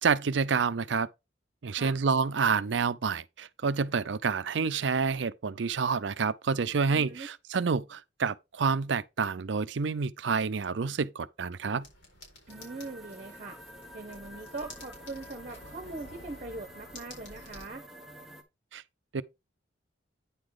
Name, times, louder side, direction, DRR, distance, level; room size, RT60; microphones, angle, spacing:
voice 1, 0.0-1.1 1.6-11.9 18.7-18.8 19.1-19.2, right 5 dB, 75° right, 0.5 m, -28 dB
voice 2, 6.9-7.3 12.5-13.6 13.9-17.8, right 3 dB, 40° right, 1.0 m, -41 dB
sound 1, 11.8-17.7, left 1 dB, 85° left, 4.3 m, -51 dB
sound 2, 12.5-18.4, equal, ahead, 1.2 m, -49 dB
9.6 x 3.9 x 4.8 m
head